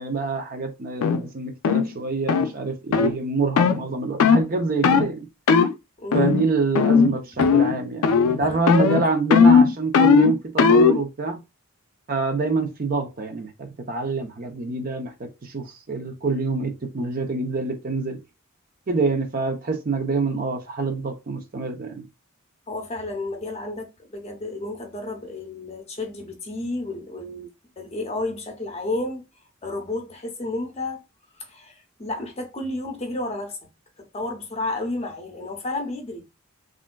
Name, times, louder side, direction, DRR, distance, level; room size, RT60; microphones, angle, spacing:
voice 1, 0.0-5.3 6.1-11.4 12.1-18.2 18.9-22.1, right 3 dB, 40° right, 0.5 m, -26 dB
sound 1, 1.0-1.2 1.6-1.9 2.3-2.5 2.9-3.1 3.6-3.8 4.2-4.5 4.8-5.1 5.5-5.7 6.1-6.5 6.7-7.1 7.4-7.8 8.0-8.4 8.7-11.0, left 5 dB, 85° left, 0.4 m, -17 dB
voice 2, 6.0-6.3 7.4-7.5 8.4-8.6 8.9-9.0 22.7-27.5 27.8-29.3 29.6-31.0 31.3-33.6 34.1-36.3, left 2 dB, 30° left, 0.7 m, -31 dB
3.4 x 2.5 x 2.2 m
head